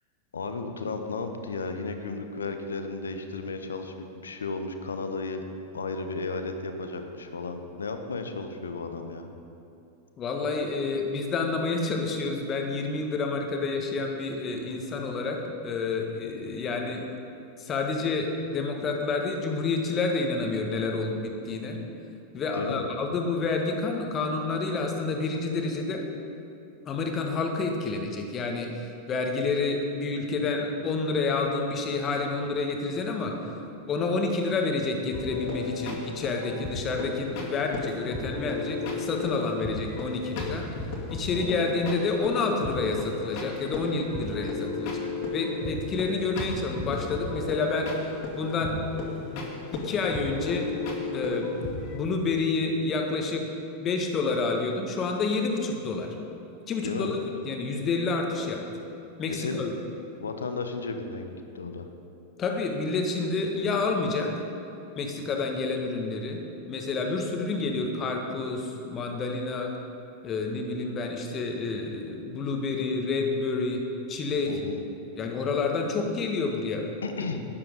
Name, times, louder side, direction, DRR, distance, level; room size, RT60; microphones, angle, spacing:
voice 1, 0.3-5.4 5.7-9.3 22.5-22.8 41.3-41.7 56.8-57.1 59.3-59.6 60.2-61.9 74.5-74.8 77.0-77.4, left 3 dB, 70° left, 7 dB, 1.0 m, -34 dB
voice 2, 10.2-17.0 17.6-21.8 22.3-26.0 26.9-33.3 33.9-40.6 41.1-47.9 48.3-48.8 49.2-50.6 51.1-51.5 51.8-53.5 53.8-56.1 56.7-57.2 57.4-58.6 59.2-59.7 62.4-64.3 64.9-66.4 66.7-69.7 70.2-73.8 74.1-74.5 75.2-76.9 77.2-77.3, left 3 dB, 30° left, 2 dB, 1.7 m, -29 dB
sound 1, 35.1-52.0, left 3 dB, 45° left, 2.4 m, -34 dB
13.0 x 9.4 x 5.4 m, 2.8 s
figure-of-eight pair, 90°, 0 cm